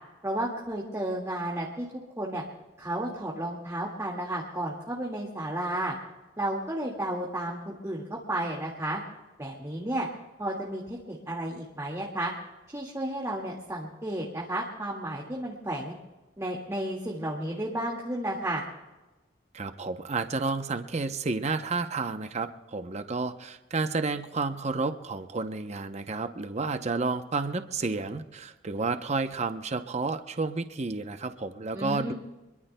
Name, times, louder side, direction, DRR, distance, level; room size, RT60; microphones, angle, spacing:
voice 1, 0.2-1.9 2.2-2.4 2.8-5.9 6.4-9.0 9.4-10.1 10.4-12.3 12.7-15.9 16.4-18.6 31.7-32.1, right 1 dB, 15° right, -3 dB, 1.9 m, -32 dB
voice 2, 19.5-32.1, right 3 dB, 35° right, 8 dB, 0.7 m, -31 dB
26.0 x 22.5 x 2.2 m, 1.1 s
head